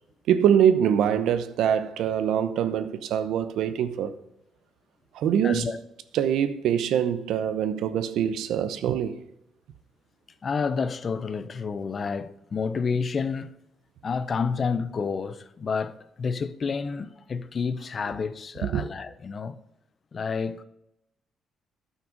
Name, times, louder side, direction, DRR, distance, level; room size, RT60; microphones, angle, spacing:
voice 1, 0.3-4.1 5.1-5.7 6.1-9.2 18.6-18.8, right 9 dB, 80° right, 0.7 m, -24 dB
voice 2, 5.4-5.8 10.4-13.5 14.0-19.6 20.1-20.6, left 5 dB, 45° left, 0.6 m, -29 dB
9.5 x 6.0 x 5.2 m
cardioid pair, 90°, 0 cm